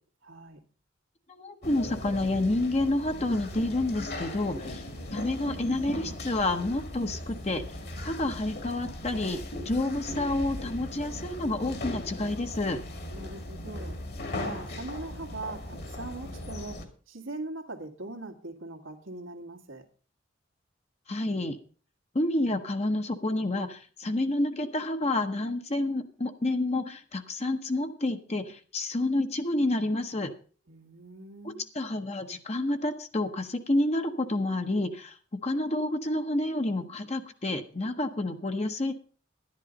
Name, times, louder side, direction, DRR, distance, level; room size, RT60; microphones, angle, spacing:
voice 1, 0.2-0.6 13.1-13.9 14.4-19.9 30.7-31.6, right 2 dB, 85° right, 2.0 m, -41 dB
voice 2, 1.3-4.8 5.1-7.6 8.0-12.8 21.1-21.6 22.1-30.3 31.4-35.2 35.4-38.9, left 2 dB, 35° left, 0.9 m, -29 dB
sound 1, 1.6-16.8, left 1 dB, 55° left, 2.0 m, -38 dB
11.0 x 10.5 x 5.2 m
head